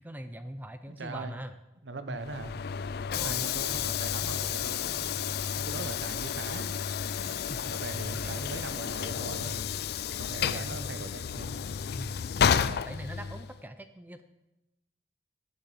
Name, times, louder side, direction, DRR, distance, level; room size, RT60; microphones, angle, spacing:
voice 1, 0.0-1.5 2.0-2.2 3.1-3.4 7.5-7.6 8.1-8.8 9.1-9.4 10.5-11.1 11.9-12.2 12.4-14.2, right 1 dB, 10° right, 10 dB, 0.5 m, -42 dB
voice 2, 0.9-1.3 1.8-2.5 3.1-6.8 7.7-9.7 10.2-11.5, right 2 dB, 85° right, 10 dB, 1.0 m, -40 dB
Train / Sliding door, 2.2-13.6, left 8 dB, 60° left, 0.4 m, -31 dB
12.0 x 6.7 x 7.7 m, 0.98 s
head